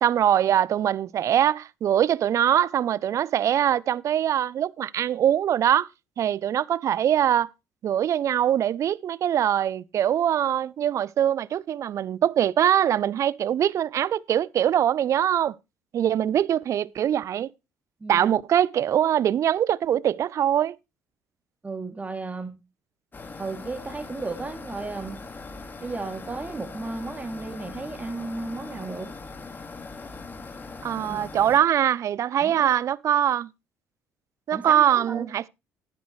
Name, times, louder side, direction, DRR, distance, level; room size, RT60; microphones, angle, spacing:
voice 1, 0.0-5.9 6.2-7.5 7.8-15.5 15.9-17.5 18.1-20.8 30.8-33.5 34.5-35.4, right 10 dB, 55° right, 0.5 m, -23 dB
voice 2, 18.0-18.3 21.6-22.6 23.4-25.2 25.8-29.1 31.0-31.2 32.4-32.7 34.5-35.3, right 3 dB, 25° right, 2.6 m, -34 dB
sound 1, 23.1-31.6, left 3 dB, 30° left, 1.9 m, -40 dB
11.5 x 10.5 x 3.2 m
hypercardioid pair, 60°, 6 cm